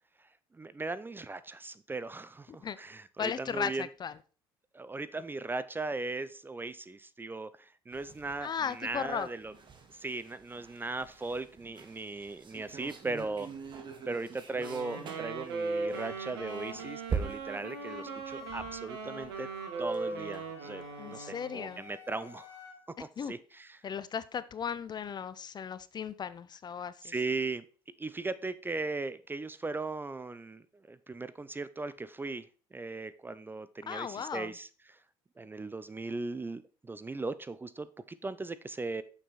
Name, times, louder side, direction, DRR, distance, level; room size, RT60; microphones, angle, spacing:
voice 1, 0.5-3.9 4.7-9.5 9.9-13.5 14.1-19.5 19.8-22.5 23.0-23.8 27.0-27.6 28.0-35.0 35.4-39.0, right 3 dB, 15° right, 0.5 m, -38 dB
voice 2, 3.2-4.1 8.4-9.3 21.0-21.8 23.2-23.3 23.8-27.1 33.9-34.5, left 7 dB, 35° left, 0.6 m, -36 dB
sound 1, 7.9-20.4 20.8-20.9 21.2-21.3, right 6 dB, 40° right, 1.8 m, -44 dB
Wind instrument woodwind instrument, 14.5-21.8, right 3 dB, 80° right, 1.4 m, -39 dB
Wind instrument woodwind instrument 2, 15.9-22.8, left 4 dB, 85° left, 2.4 m, -51 dB
6.7 x 6.1 x 4.1 m
hypercardioid pair, 70°, 13 cm